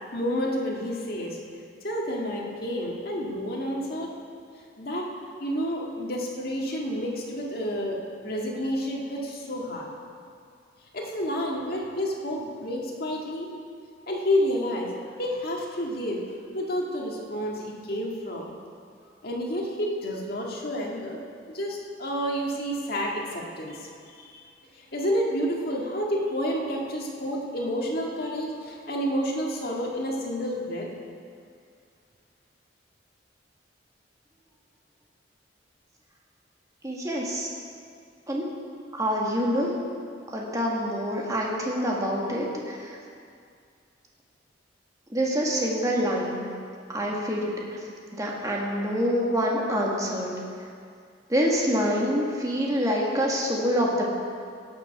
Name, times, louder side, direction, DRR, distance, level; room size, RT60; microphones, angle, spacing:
voice 1, 0.1-1.4 1.8-4.1 4.8-5.1 5.4-8.0 8.2-9.9 10.9-13.5 14.1-14.9 15.2-16.2 16.5-18.5 19.2-21.2 21.5-24.4 24.8-30.9, equal, 55° left, -2 dB, 1.8 m, -29 dB
voice 2, 36.8-37.5 38.3-38.4 38.9-39.7 40.3-43.0 45.1-46.5 46.9-47.5 48.1-50.3 51.3-54.1, equal, 20° right, -3 dB, 1.7 m, -26 dB
16.5 x 6.7 x 5.8 m, 2.3 s
head